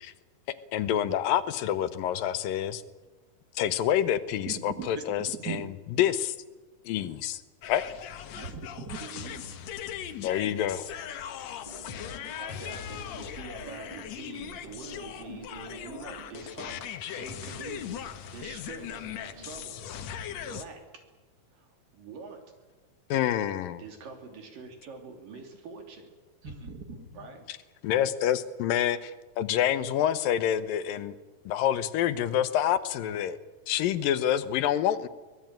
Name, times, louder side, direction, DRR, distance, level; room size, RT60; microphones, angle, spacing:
voice 1, 0.7-2.8 3.6-5.7 6.0-6.4 6.9-7.4 7.7-7.8 10.2-11.2 23.1-23.8 27.5-27.6 27.8-31.2 31.5-33.4 33.7-35.1, left 10 dB, 80° left, 13 dB, 2.7 m, -27 dB
voice 2, 4.5-5.6 8.3-9.0 26.4-27.1, right 6 dB, 35° right, 6 dB, 2.0 m, -39 dB
sound 1, 7.6-20.6, left 9 dB, 65° left, 2.0 m, -39 dB
voice 3, 9.0-9.6 12.4-19.8 20.4-20.8 21.5-22.4 23.8-26.1 27.1-27.5, right 5 dB, 75° right, 4 dB, 4.8 m, -45 dB
sound 2, 11.7-12.9 13.2-19.7, right 2 dB, 10° right, 2.4 m, -50 dB
24.0 x 18.5 x 9.0 m, 1.2 s
omnidirectional pair, 3.9 m